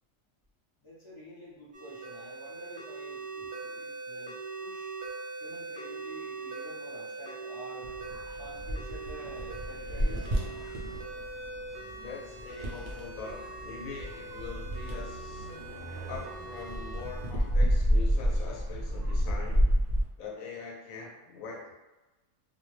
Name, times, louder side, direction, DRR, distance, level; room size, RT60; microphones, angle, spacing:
voice 1, 0.8-4.9 5.4-7.9 8.4-10.3, equal, 40° left, -7 dB, 0.4 m, -49 dB
sound 1, 1.7-17.3, right 3 dB, 60° right, 0.7 m, -42 dB
sound 2, 7.8-20.0, equal, 80° right, 0.3 m, -31 dB
voice 2, 12.0-15.5 16.1-19.7 20.2-21.7, left 4 dB, 75° left, 0 dB, 1.0 m, -43 dB
2.4 x 2.1 x 3.0 m, 1.1 s
omnidirectional pair, 1.5 m